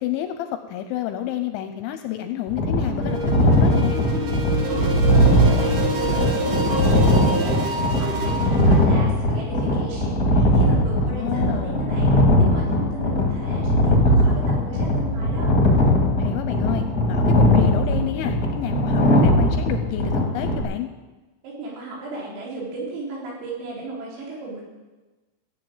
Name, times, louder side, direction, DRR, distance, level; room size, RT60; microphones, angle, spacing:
voice 1, 0.0-4.0 11.0-11.8 16.2-20.9, left 12 dB, 85° left, 8 dB, 2.8 m, -29 dB
sound 1, 2.5-20.6, left 1 dB, 50° left, 1.0 m, -19 dB
sound 2, 2.8-8.9, right 2 dB, 60° right, 3.1 m, -27 dB
voice 2, 4.7-15.6 21.4-24.6, right 2 dB, 80° right, -3 dB, 6.4 m, -35 dB
15.0 x 7.7 x 8.7 m, 1.2 s
omnidirectional pair, 5.9 m